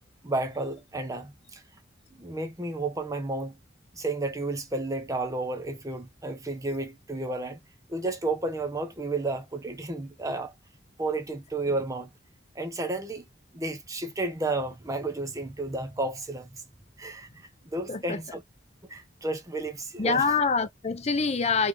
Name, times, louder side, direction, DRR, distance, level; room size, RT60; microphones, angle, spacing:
voice 1, 0.2-1.6 2.2-3.6 3.9-7.6 7.9-10.5 11.0-12.1 12.5-13.3 13.5-16.6 17.0-18.4 18.9-20.2, right 2 dB, 15° right, 0.7 m, -32 dB
voice 2, 17.9-18.2 20.0-21.7, left 4 dB, 35° left, 0.6 m, -25 dB
3.4 x 3.3 x 3.0 m
head